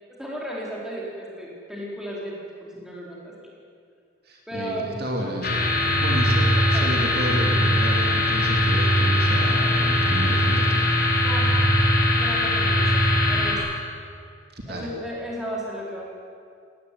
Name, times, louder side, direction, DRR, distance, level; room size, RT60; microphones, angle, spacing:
voice 1, 0.1-3.5 4.5-5.2 6.7-6.9 11.2-11.6 12.1-13.7 14.7-16.0, equal, 5° right, -4 dB, 4.5 m, -34 dB
voice 2, 4.2-11.0 14.5-14.9, right 1 dB, 50° right, 0 dB, 2.9 m, -32 dB
sound 1, 5.4-13.5, left 1 dB, 45° left, 4.3 m, -20 dB
18.5 x 18.0 x 9.5 m, 2.3 s
head